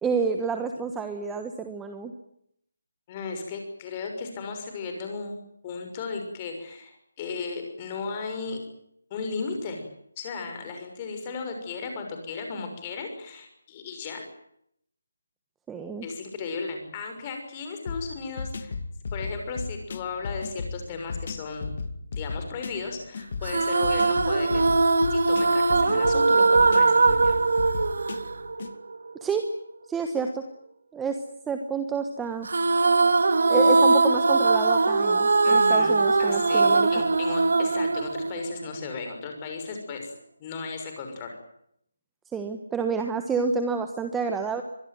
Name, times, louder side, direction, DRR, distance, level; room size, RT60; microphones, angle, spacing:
voice 1, 0.0-2.1 15.7-16.1 29.2-29.4 29.9-30.4 30.9-31.2 31.5-32.5 33.5-36.9 42.3-44.6, right 5 dB, 5° right, 6 dB, 1.3 m, -29 dB
voice 2, 3.1-5.4 5.6-8.6 9.1-9.8 10.2-14.2 16.0-18.8 19.1-21.7 22.2-24.6 25.1-27.4 35.4-35.9 36.2-40.1 40.4-41.4, left 4 dB, 20° left, 4 dB, 6.3 m, -35 dB
sound 1, 17.9-28.7, left 4 dB, 40° left, 2.4 m, -35 dB
sound 2, 23.4-29.0 32.5-38.9, right 3 dB, 60° right, 3.0 m, -21 dB
24.5 x 22.0 x 9.3 m, 0.73 s
hypercardioid pair, 175°, 0 cm